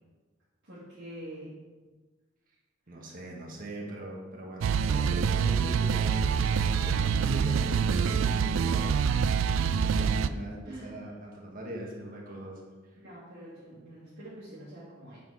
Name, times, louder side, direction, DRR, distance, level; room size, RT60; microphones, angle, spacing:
voice 1, 0.6-1.5 9.6-9.8 10.6-11.1 13.0-15.2, right 1 dB, 60° right, -10 dB, 2.0 m, -45 dB
voice 2, 2.9-8.9 9.7-12.6, right 1 dB, 45° right, -2 dB, 1.5 m, -41 dB
sound 1, 4.6-10.3, right 6 dB, 85° right, 0.3 m, -26 dB
7.7 x 3.9 x 5.6 m, 1.3 s
head